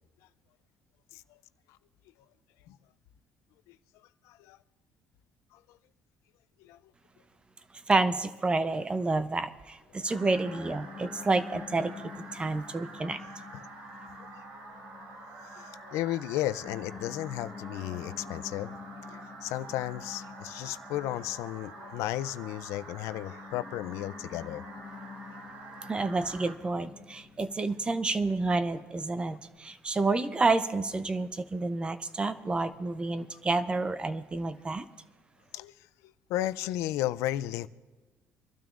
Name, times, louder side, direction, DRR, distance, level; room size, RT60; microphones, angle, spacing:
voice 1, 4.3-4.6 5.5-5.6 6.6-6.8 10.0-10.1 13.5-13.7 15.4-18.7 19.1-24.7 35.5-35.7 36.0-37.7, left 14 dB, 85° left, 0.4 m, -34 dB
voice 2, 7.9-13.2 25.9-34.8, right 3 dB, 20° right, 0.6 m, -29 dB
sound 1, 10.1-26.5, right 3 dB, 90° right, 2.4 m, -47 dB
Piano, 10.2-29.6, left 6 dB, 55° left, 1.2 m, -49 dB
26.0 x 12.5 x 2.5 m
cardioid pair, 110°, 5 cm